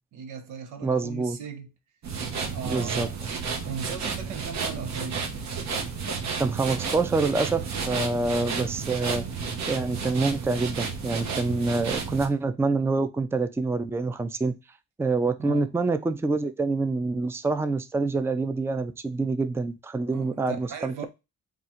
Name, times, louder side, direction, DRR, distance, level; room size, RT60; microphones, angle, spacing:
voice 1, 0.1-1.7 2.5-3.1 3.7-5.2 15.4-15.7 20.1-21.1, right 6 dB, 90° right, 0.9 m, -37 dB
voice 2, 0.8-1.4 2.7-3.1 6.4-9.3 9.7-14.5 15.0-21.1, right 3 dB, 10° right, 0.4 m, -26 dB
sound 1, 2.0-12.3, right 5 dB, 65° right, 1.0 m, -32 dB
3.7 x 2.4 x 4.3 m
cardioid pair, 90°, 30 cm